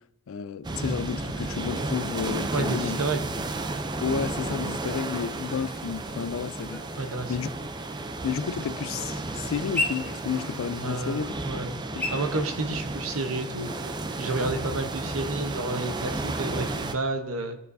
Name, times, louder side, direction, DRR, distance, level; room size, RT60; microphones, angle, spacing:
voice 1, 0.3-3.0 4.0-7.0 7.3-7.5 8.2-11.3 11.9-12.0, left 6 dB, 70° left, 0.4 m, -31 dB
sound 1, 0.6-16.9, right 2 dB, 20° right, 0.4 m, -33 dB
voice 2, 2.5-3.3 7.0-7.4 10.8-11.7 12.1-13.7 14.2-17.6, right 2 dB, 85° right, 0.9 m, -30 dB
sound 2, 3.5-16.3, left 2 dB, 10° left, 1.0 m, -40 dB
16.0 x 6.7 x 2.6 m
head